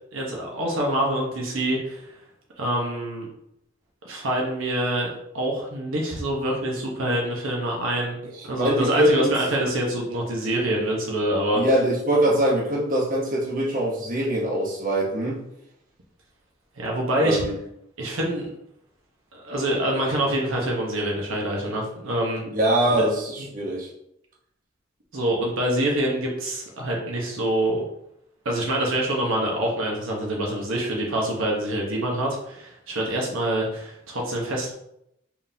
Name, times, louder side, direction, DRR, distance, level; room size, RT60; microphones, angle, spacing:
voice 1, 0.1-2.0 2.6-3.2 4.0-8.2 8.4-11.6 16.8-17.4 18.0-18.5 19.3-22.4 23.0-23.1 25.1-27.8 28.4-34.7, right 1 dB, 70° right, -1 dB, 1.0 m, -26 dB
voice 2, 8.6-9.3 11.5-15.4 17.2-17.6 22.5-23.9, right 1 dB, 40° right, -3 dB, 1.0 m, -23 dB
4.6 x 3.6 x 2.7 m, 0.77 s
head